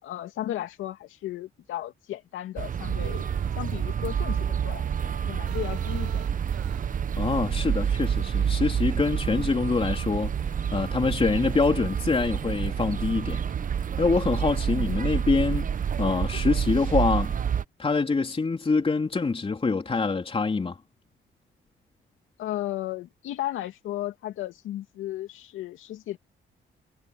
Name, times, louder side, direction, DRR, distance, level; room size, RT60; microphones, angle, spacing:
voice 1, 0.0-3.3 3.6-6.2 14.7-15.1 22.4-26.2, left 13 dB, 85° left, 2.6 m, -35 dB
sound 1, 2.6-17.6, right 8 dB, 45° right, 1.0 m, -28 dB
sound 2, 2.8-8.3, right 12 dB, 80° right, 7.5 m, -47 dB
voice 2, 7.2-13.4 14.0-15.7 16.0-17.3 17.8-20.8, left 4 dB, 30° left, 3.8 m, -25 dB
cardioid pair, 90°, 20 cm